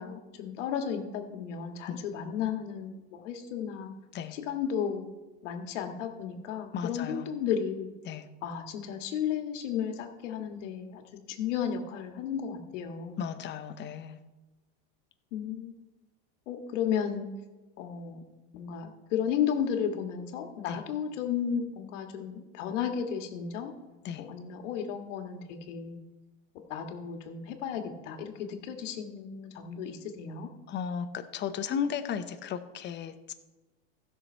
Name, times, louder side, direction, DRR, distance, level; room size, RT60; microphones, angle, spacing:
voice 1, 0.0-3.9 4.3-5.1 5.4-7.9 8.4-11.0 11.3-13.2 15.3-15.8 16.5-17.3 17.8-18.2 18.5-23.7 24.2-26.0 26.7-30.5, left 8 dB, 85° left, 5 dB, 1.7 m, -33 dB
voice 2, 6.7-7.3 8.0-8.3 13.2-14.2 20.7-20.8 24.0-24.2 30.7-33.3, left 7 dB, 30° left, 9 dB, 0.8 m, -35 dB
15.5 x 6.4 x 4.5 m, 1.1 s
supercardioid pair, 140°, 36 cm